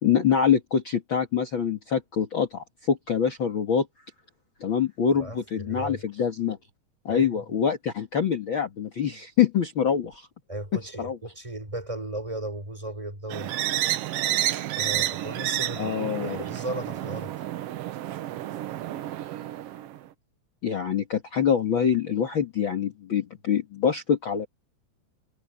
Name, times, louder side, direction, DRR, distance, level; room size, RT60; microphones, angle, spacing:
voice 1, 0.0-3.9 4.6-6.6 7.1-10.3 11.0-11.2 15.8-16.4 20.6-24.5, left 7 dB, 45° left, 2.3 m, -25 dB
voice 2, 5.1-6.0 7.1-7.4 10.5-13.5 14.8-17.3, right 1 dB, 10° right, 6.6 m, -36 dB
sound 1, 13.3-20.1, right 13 dB, 70° right, 1.4 m, -30 dB
omnidirectional pair, 3.6 m